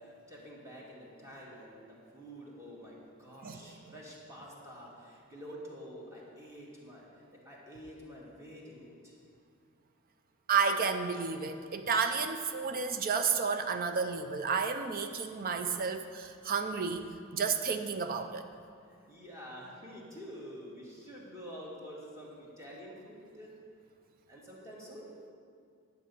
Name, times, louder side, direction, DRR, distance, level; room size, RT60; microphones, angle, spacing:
voice 1, 0.0-7.1 7.5-9.1 19.1-23.6 24.3-25.1, equal, 15° right, -4 dB, 1.9 m, -48 dB
voice 2, 3.4-3.9 10.5-18.4, right 5 dB, 45° right, 8 dB, 0.5 m, -31 dB
10.0 x 7.3 x 5.4 m, 2.3 s
head